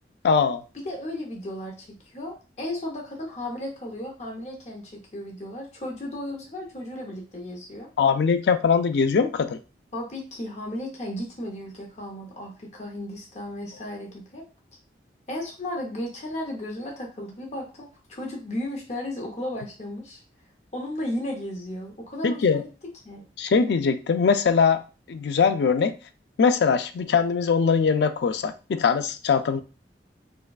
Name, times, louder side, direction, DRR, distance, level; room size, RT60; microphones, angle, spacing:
voice 1, 0.2-0.6 8.0-9.6 22.2-22.6 23.4-24.8 25.1-25.9 26.4-29.6, left 5 dB, 70° left, 10 dB, 0.4 m, -21 dB
voice 2, 0.7-7.9 9.9-14.4 15.3-20.2 20.7-22.7 23.0-23.3, left 1 dB, 40° left, 0 dB, 0.7 m, -34 dB
4.5 x 2.3 x 2.3 m, 0.32 s
head